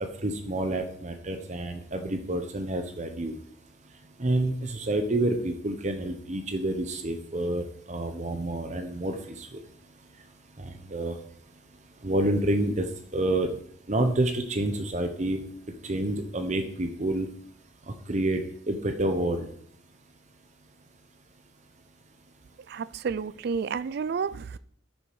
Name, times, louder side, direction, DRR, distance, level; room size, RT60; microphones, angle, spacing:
voice 1, 0.2-3.4 4.2-9.5 10.6-11.1 12.0-12.9 13.1-13.5 13.9-15.4 15.8-17.3 18.1-18.4 18.7-19.5, right 1 dB, 35° right, 0.9 m, -28 dB
voice 2, 22.7-24.6, right 5 dB, 55° right, 0.3 m, -31 dB
9.9 x 6.3 x 4.7 m
head